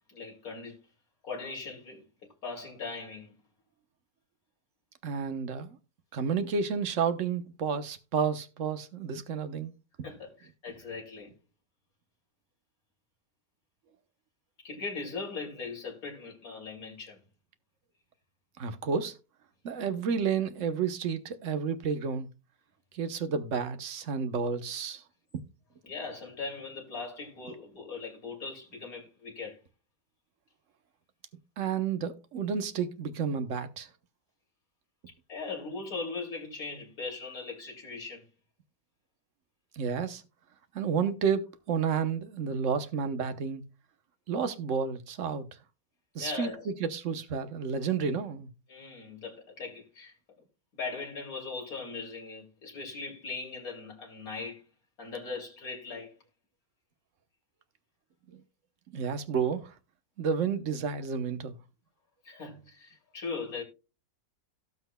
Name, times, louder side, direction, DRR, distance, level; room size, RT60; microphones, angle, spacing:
voice 1, 0.1-0.8 1.2-2.0 2.4-3.3 10.0-11.3 14.6-17.2 25.8-29.6 35.1-38.3 46.2-46.7 48.7-50.1 50.7-54.6 55.0-56.1 62.2-63.6, left 4 dB, 70° left, 3.2 m, -39 dB
voice 2, 5.0-5.8 6.1-9.7 18.6-19.1 19.6-22.3 22.9-25.0 25.3-25.4 31.6-33.9 39.8-40.2 40.7-43.6 44.3-45.4 46.1-48.5 58.3-58.4 58.9-59.7 60.2-61.5, right 6 dB, 60° right, 1.2 m, -31 dB
17.5 x 6.1 x 2.2 m
omnidirectional pair, 1.6 m